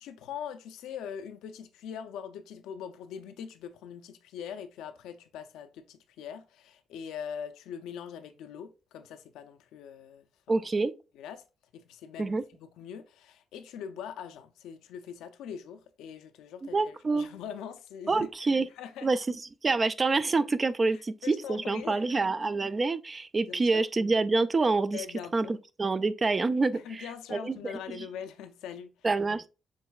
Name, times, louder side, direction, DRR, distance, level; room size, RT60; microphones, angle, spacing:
voice 1, 0.0-10.7 11.1-11.4 11.7-19.1 20.9-22.2 23.5-23.8 24.9-25.6 26.7-29.1, left 8 dB, 90° left, 0.5 m, -42 dB
voice 2, 10.5-10.9 12.2-12.4 16.7-17.3 18.1-18.7 19.0-19.2 19.6-25.0 25.3-25.5 25.8-27.0 27.3-27.5 29.0-29.5, right 3 dB, 30° right, 0.4 m, -26 dB
7.2 x 3.1 x 2.3 m
cardioid pair, 90°, 0 cm